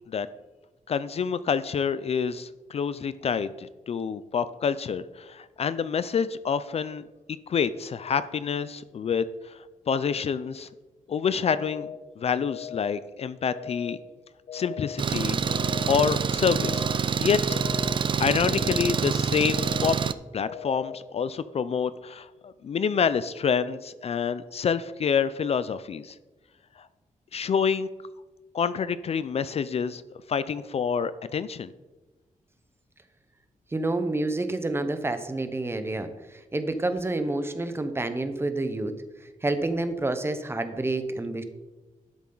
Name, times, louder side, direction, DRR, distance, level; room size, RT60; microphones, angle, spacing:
voice 1, 0.9-7.0 7.5-9.6 9.9-10.7 11.1-11.9 12.2-14.0 14.5-15.4 15.9-16.8 17.2-17.6 18.2-19.9 20.3-26.1 27.3-27.9 28.5-30.0 30.3-31.7, left 6 dB, 50° left, 15 dB, 0.4 m, -27 dB
sound 1, 11.5-12.0 12.5-13.0 13.5-14.0 14.5-15.0 15.5-16.0 16.5-17.0 17.5-18.0 18.5-19.0 19.5-20.0 20.5-21.0, left 9 dB, 70° left, 1.4 m, -38 dB
Engine, 15.0-20.1, right 6 dB, 35° right, 0.4 m, -26 dB
voice 2, 33.7-38.9 39.4-41.4, right 2 dB, 20° right, 9 dB, 0.7 m, -28 dB
12.0 x 7.1 x 3.9 m, 1.2 s
wide cardioid pair, 135°, 14 cm